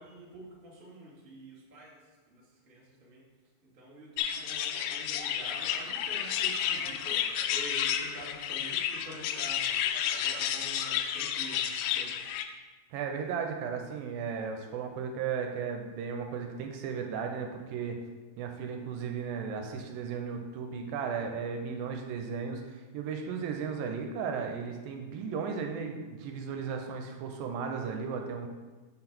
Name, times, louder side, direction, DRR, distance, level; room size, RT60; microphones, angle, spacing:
voice 1, 0.0-3.2 3.7-10.0 10.2-11.6 11.9-12.1, right 1 dB, 30° right, -5 dB, 0.9 m, -47 dB
sound 1, 4.2-12.4, left 9 dB, 85° left, 2.3 m, -31 dB
voice 2, 12.9-18.0 18.4-28.5, right 6 dB, 85° right, 4 dB, 2.4 m, -35 dB
7.0 x 3.9 x 5.9 m, 1.3 s
omnidirectional pair, 4.3 m